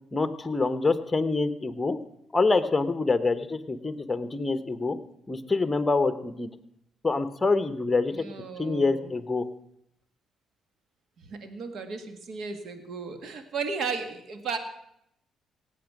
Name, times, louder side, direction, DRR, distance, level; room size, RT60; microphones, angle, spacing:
voice 1, 0.1-2.0 2.3-5.0 5.3-6.5 7.0-8.2 8.6-9.4, left 3 dB, 20° left, 11 dB, 1.1 m, -26 dB
voice 2, 8.1-9.1 11.3-14.6, right 5 dB, 65° right, 7 dB, 1.8 m, -35 dB
17.5 x 8.4 x 6.1 m, 0.78 s
cardioid pair, 90°, 0 cm